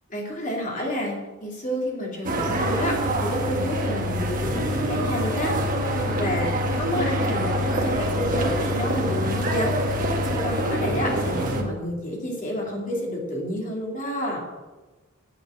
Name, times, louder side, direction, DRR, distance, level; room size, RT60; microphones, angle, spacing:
voice 1, 0.1-5.5 5.9-14.5, equal, 35° left, -2 dB, 2.9 m, -30 dB
sound 1, 2.2-11.6, equal, 40° right, 1.4 m, -25 dB
8.8 x 7.9 x 7.6 m, 1.2 s
head